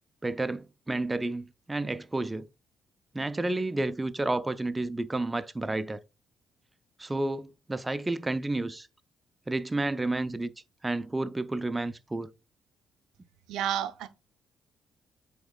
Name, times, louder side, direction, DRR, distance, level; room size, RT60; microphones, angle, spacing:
voice 1, 0.2-2.5 3.1-6.0 7.0-8.9 9.5-10.5 10.8-12.3, right 2 dB, 15° right, 0.3 m, -31 dB
voice 2, 13.5-14.1, right 10 dB, 85° right, 0.4 m, -30 dB
7.6 x 2.9 x 2.3 m
cardioid pair, 90°, 0 cm